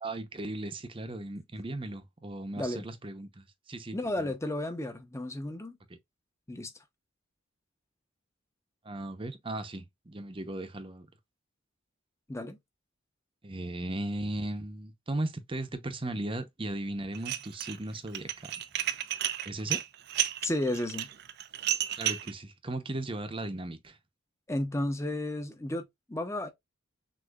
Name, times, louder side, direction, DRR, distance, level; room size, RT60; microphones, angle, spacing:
voice 1, 0.0-4.3 8.8-11.1 13.4-18.5 19.4-19.8 22.0-24.0, right 1 dB, 25° right, 0.7 m, -37 dB
voice 2, 3.9-5.8 6.5-6.7 12.3-12.6 20.4-21.1 24.5-26.5, left 1 dB, 15° left, 0.7 m, -33 dB
Dishes pots and pans, 17.1-17.8 18.1-22.3, right 11 dB, 55° right, 0.5 m, -32 dB
6.3 x 2.7 x 2.3 m
head